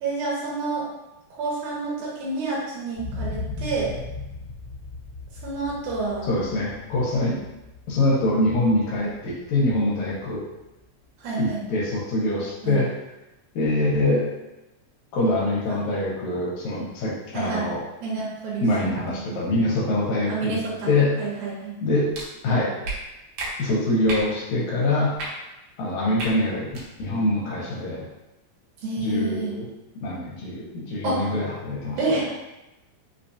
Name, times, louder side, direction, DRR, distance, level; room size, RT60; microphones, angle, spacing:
voice 1, 0.0-0.9 1.3-3.9 5.4-6.3 11.2-11.6 12.6-12.8 15.7-15.8 17.3-17.7 18.0-19.4 20.3-20.9 21.2-21.7 28.8-29.5 31.0-31.3 32.0-32.3, right 3 dB, 85° right, -6 dB, 2.4 m, -28 dB
sound 1, 2.9-10.8 11.3-11.4, left 3 dB, 55° left, 1.2 m, -38 dB
voice 2, 6.2-7.4 7.9-10.4 11.4-12.9 13.6-14.3 15.1-17.8 18.6-20.6 20.9-21.1 21.8-22.1 22.4-22.7 23.6-25.1 25.8-26.7 27.0-28.1 29.0-29.7 30.0-32.0, left 2 dB, 75° left, -4 dB, 2.1 m, -24 dB
sound 2, 22.1-22.3 22.8-23.0 23.4-23.5 24.1-24.3 25.1-25.3 26.2-26.3 26.7-26.8, right 2 dB, 70° right, 2.0 m, -31 dB
5.0 x 2.3 x 2.6 m, 0.98 s
omnidirectional pair, 3.5 m